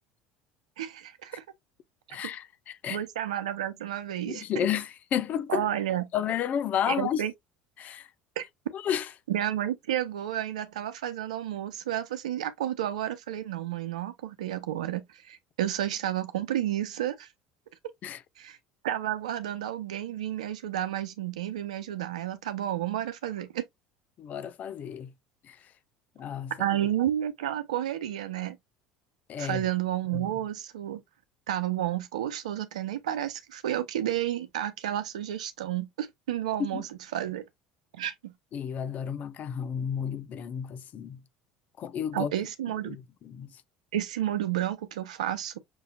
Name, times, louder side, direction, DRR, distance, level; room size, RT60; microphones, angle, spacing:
voice 1, 0.8-1.4 2.9-4.7 5.5-6.1 6.9-7.3 8.4-8.5 9.3-17.3 18.4-18.6 18.8-23.6 26.6-28.6 29.4-31.0 31.5-37.4 37.9-38.3 42.1-43.0 43.9-45.6, right 11 dB, 85° right, 0.7 m, -31 dB
voice 2, 2.1-3.0 4.3-5.7 6.1-7.2 7.8-8.1 8.7-9.1 18.0-18.2 24.2-25.1 25.4-25.6 26.2-26.5 29.3-29.6 30.1-30.3 36.6-36.8 38.5-41.2 41.8-42.3 42.8-43.5, left 9 dB, 50° left, 0.7 m, -32 dB
6.2 x 2.7 x 2.2 m
hypercardioid pair, 75°, 4 cm